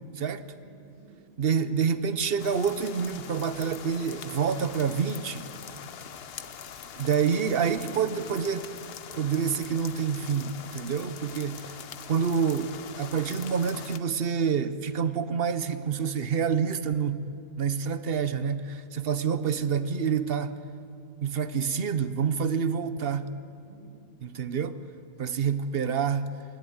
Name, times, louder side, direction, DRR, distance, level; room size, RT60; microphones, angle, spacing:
voice 1, 0.3-1.2 23.1-23.9 25.1-25.5, right 2 dB, 80° left, -8 dB, 6.1 m, -57 dB
voice 2, 1.4-5.5 6.9-8.7 9.2-11.7 12.1-20.6 21.2-23.3 24.2-24.8 25.2-26.3, right 6 dB, 60° right, 13 dB, 1.0 m, -27 dB
sound 1, 2.4-14.0, left 8 dB, 60° left, 1.0 m, -43 dB
21.0 x 14.5 x 9.5 m, 2.4 s
omnidirectional pair, 1.2 m